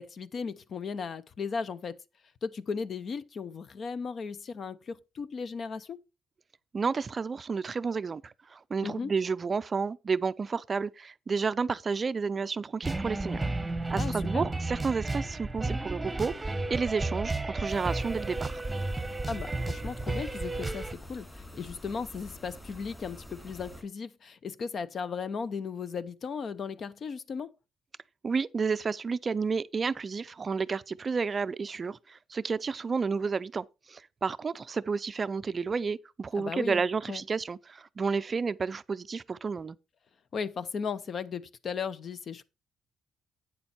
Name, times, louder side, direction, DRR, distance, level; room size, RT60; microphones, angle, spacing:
voice 1, 0.0-2.0 2.4-6.0 8.8-9.1 14.0-14.5 19.3-27.5 36.3-36.8 37.1-37.2 40.3-42.4, left 5 dB, 50° left, 0.7 m, -36 dB
voice 2, 6.7-13.5 13.9-18.6 28.2-39.8, right 5 dB, 35° right, 0.4 m, -31 dB
sound 1, 12.8-20.9, right 2 dB, 15° right, 1.0 m, -32 dB
sound 2, 17.7-23.8, left 1 dB, 10° left, 2.5 m, -47 dB
8.9 x 6.9 x 4.3 m
cardioid pair, 90°, 0 cm